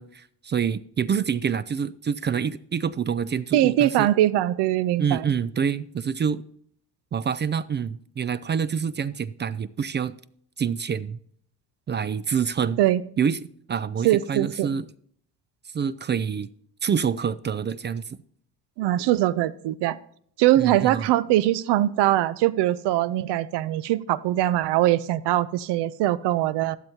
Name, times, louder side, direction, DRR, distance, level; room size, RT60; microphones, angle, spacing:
voice 1, 0.0-4.1 5.0-6.4 7.1-10.2 10.6-11.2 11.9-12.8 13.2-13.4 13.7-14.9 15.7-16.5 16.8-18.2 20.6-21.1, right 7 dB, 25° right, 0.4 m, -26 dB
voice 2, 3.5-5.3 12.8-13.0 14.0-14.7 18.8-20.0 20.4-26.8, right 14 dB, 65° right, 0.7 m, -22 dB
13.5 x 12.0 x 2.9 m
supercardioid pair, 70°, 44 cm